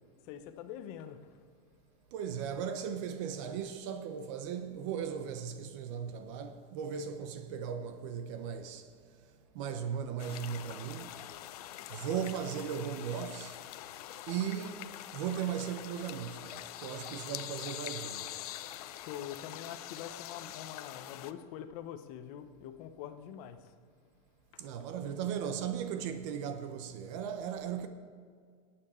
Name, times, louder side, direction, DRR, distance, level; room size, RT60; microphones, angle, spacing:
voice 1, 0.2-1.4 17.5-17.7 18.9-23.7 24.5-24.7, left 10 dB, 40° left, 0.8 m, -45 dB
voice 2, 2.1-9.3 9.5-11.2 11.9-13.6 14.3-18.3 24.6-27.9, right 8 dB, 55° right, 0.8 m, -37 dB
sound 1, 10.2-21.3, left 13 dB, 75° left, 0.6 m, -44 dB
17.5 x 8.7 x 4.4 m
supercardioid pair, 170°, 19 cm